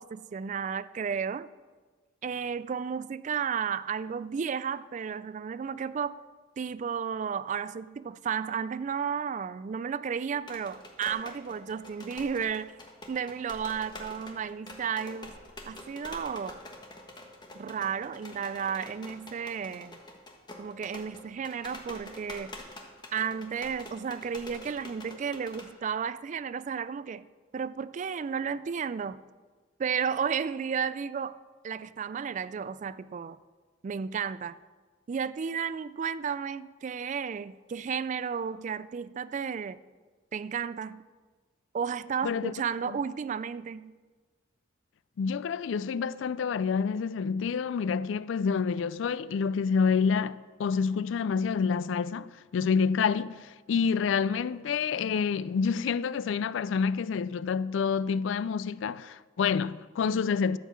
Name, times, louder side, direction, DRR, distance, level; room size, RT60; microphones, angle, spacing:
voice 1, 0.0-1.5 2.2-6.2 6.6-12.7 13.1-15.4 15.7-16.6 17.5-20.0 20.6-22.5 23.1-27.2 27.5-29.2 29.8-31.4 31.6-33.4 33.8-34.6 35.1-39.8 40.3-41.0 41.7-43.9, right 7 dB, 40° right, 0.3 m, -33 dB
sound 1, 10.4-25.7, left 2 dB, 25° left, 1.3 m, -47 dB
voice 2, 45.2-60.6, left 6 dB, 75° left, 0.4 m, -28 dB
12.5 x 5.6 x 7.2 m
head